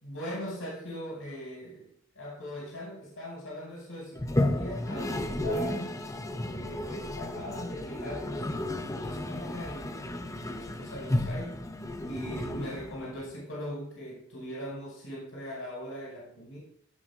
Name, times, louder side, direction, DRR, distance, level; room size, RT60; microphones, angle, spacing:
voice 1, 0.0-1.9 2.1-5.8 6.4-11.6 12.0-16.6, equal, 90° left, -5 dB, 5.0 m, -40 dB
Toilet flush, 4.1-13.3, left 1 dB, 15° left, 0.7 m, -33 dB
16.0 x 5.9 x 3.7 m, 0.65 s
head